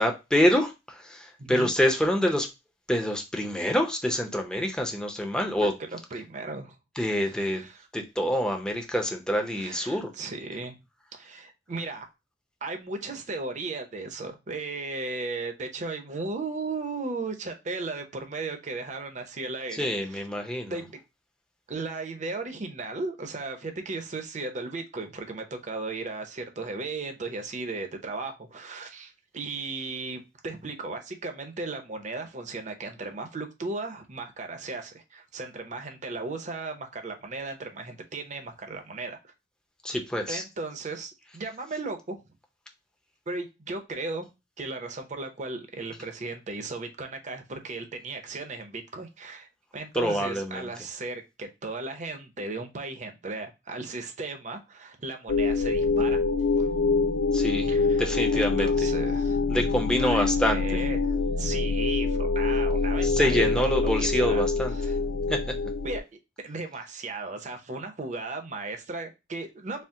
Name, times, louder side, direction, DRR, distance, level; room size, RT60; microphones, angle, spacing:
voice 1, 0.0-2.5 2.9-5.7 7.0-7.6 7.9-10.1 19.8-20.7 39.8-40.4 49.9-50.7 57.3-57.7 58.0-58.7 59.5-60.8 63.0-64.8 65.3-65.5, equal, 5° left, 0.6 m, -26 dB
voice 2, 1.4-1.7 5.8-6.8 7.3-7.9 9.5-10.8 11.2-12.1 12.6-20.2 20.7-21.0 21.7-39.3 40.3-42.2 43.3-44.3 44.6-56.2 56.6-56.7 57.7-58.0 58.3-59.4 60.0-65.0 65.8-66.0 66.4-69.8, right 3 dB, 40° right, 0.7 m, -36 dB
sound 1, 55.3-66.0, left 4 dB, 80° left, 0.4 m, -25 dB
4.3 x 2.0 x 3.6 m
head